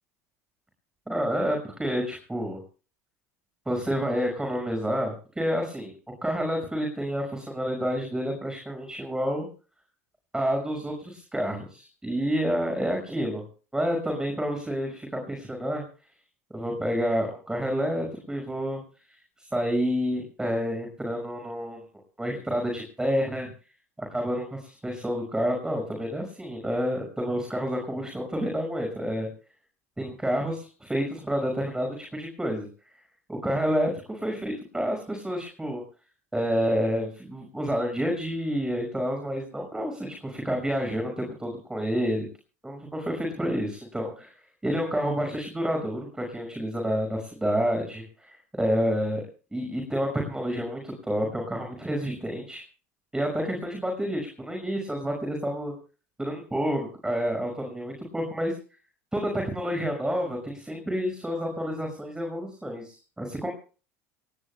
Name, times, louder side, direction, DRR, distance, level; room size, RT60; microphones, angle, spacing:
voice 1, 1.1-2.6 3.7-5.9 6.2-9.5 10.3-13.4 13.7-15.8 16.5-21.8 22.2-23.5 24.0-29.3 30.0-32.7 33.3-35.8 36.3-42.3 42.6-44.3 44.6-49.2 49.5-52.6 53.1-55.7 56.2-58.6 59.1-63.5, equal, 10° right, 2 dB, 5.7 m, -29 dB
29.0 x 18.0 x 2.2 m, 0.37 s
hypercardioid pair, 85°, 8 cm